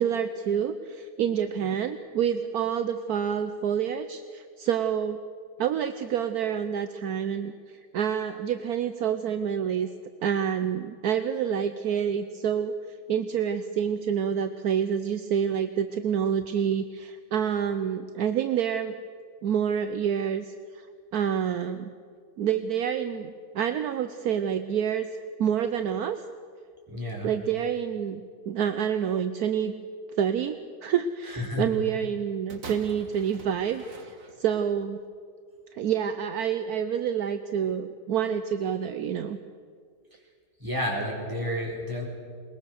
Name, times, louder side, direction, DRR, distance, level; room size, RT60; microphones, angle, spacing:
voice 1, 0.0-5.2 5.6-9.9 10.2-12.7 13.1-19.0 19.4-20.9 21.1-21.9 22.4-25.1 25.4-26.2 27.2-29.7 30.2-35.0 35.7-39.4, right 8 dB, 70° right, 9 dB, 1.2 m, -28 dB
voice 2, 26.9-27.3 31.3-31.7 40.6-42.1, left 1 dB, 10° right, -2 dB, 4.4 m, -31 dB
sound 1, 32.5-34.7 35.5-35.6, right 3 dB, 55° right, 2.0 m, -45 dB
21.5 x 20.5 x 6.5 m, 2.1 s
omnidirectional pair, 1.8 m